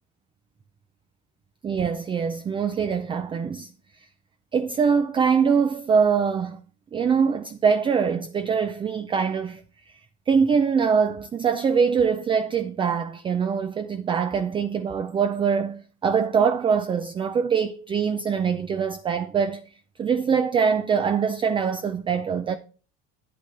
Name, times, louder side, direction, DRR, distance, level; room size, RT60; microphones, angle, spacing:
voice 1, 1.6-3.7 4.5-6.6 6.9-9.9 10.3-19.6 20.0-22.6, right 6 dB, 15° right, 0.4 m, -23 dB
8.9 x 8.5 x 3.3 m
supercardioid pair, 125°, 31 cm